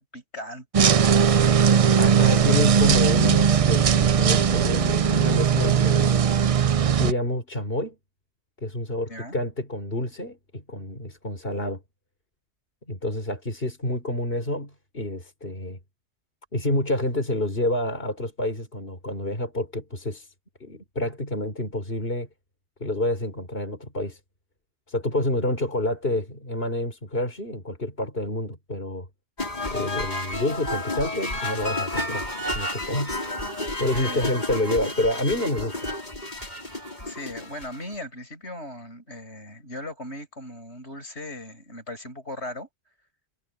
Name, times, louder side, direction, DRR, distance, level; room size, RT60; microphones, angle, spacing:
voice 1, 0.0-1.8 2.3-2.7 9.1-9.4 33.9-34.3 37.0-42.7, left 1 dB, 75° left, 7.6 m, -38 dB
sound 1, 0.7-7.1, right 7 dB, 50° right, 0.4 m, -19 dB
voice 2, 2.0-6.3 6.8-8.0 8.6-11.8 12.9-15.8 16.5-20.3 20.6-22.3 22.8-24.2 24.9-29.1 29.7-33.2 33.8-35.8, left 1 dB, 55° left, 5.2 m, -28 dB
sound 2, 29.4-37.9, left 1 dB, 40° left, 4.7 m, -31 dB
omnidirectional pair, 1.1 m